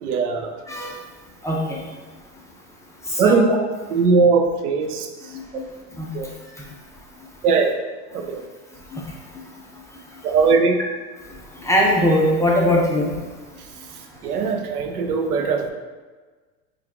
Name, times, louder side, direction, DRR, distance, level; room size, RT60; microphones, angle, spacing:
voice 1, 0.0-0.5 3.2-3.5 3.9-5.1 6.1-6.3 7.4-7.7 8.1-8.4 10.2-10.8 14.2-15.7, right 5 dB, 85° right, 5 dB, 0.6 m, -19 dB
voice 2, 1.4-1.8 3.2-3.6 6.0-6.1 8.9-9.0 11.6-13.1, left 1 dB, 5° left, -3 dB, 0.6 m, -20 dB
4.6 x 2.4 x 3.6 m, 1.4 s
hypercardioid pair, 105°, 44 cm